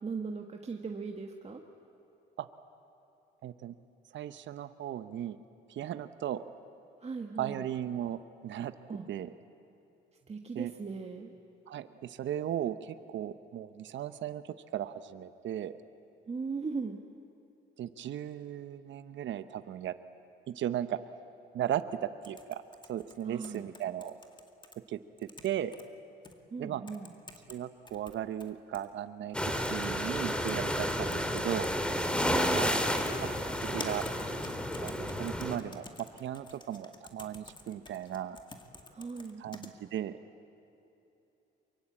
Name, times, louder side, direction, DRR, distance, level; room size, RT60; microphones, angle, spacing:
voice 1, 0.0-1.6 7.0-7.6 8.9-9.1 10.3-11.3 16.3-17.0 23.2-23.7 26.5-27.1 32.2-32.8 38.9-39.4, right 4 dB, 30° right, 3 dB, 1.5 m, -38 dB
voice 2, 3.4-3.8 4.1-5.4 5.7-6.4 7.4-8.7 9.1-9.3 10.5-10.7 11.7-15.8 17.8-19.9 20.5-21.0 21.5-22.6 22.9-24.1 24.9-25.7 26.6-26.8 27.5-31.7 32.6-33.3 33.6-34.0 34.8-38.4 39.4-40.2, right 11 dB, 70° right, 12 dB, 0.9 m, -36 dB
sound 1, 22.2-24.7 25.2-25.8 26.2-26.3 26.9-27.6 27.9-28.9 29.6-29.9 30.2-31.7 32.4-32.7 33.0-39.7, left 3 dB, 25° left, 2.2 m, -48 dB
sound 2, 29.3-35.6, equal, 5° left, 2.1 m, -31 dB
23.5 x 23.5 x 8.6 m, 2.9 s
cardioid pair, 90°, 20 cm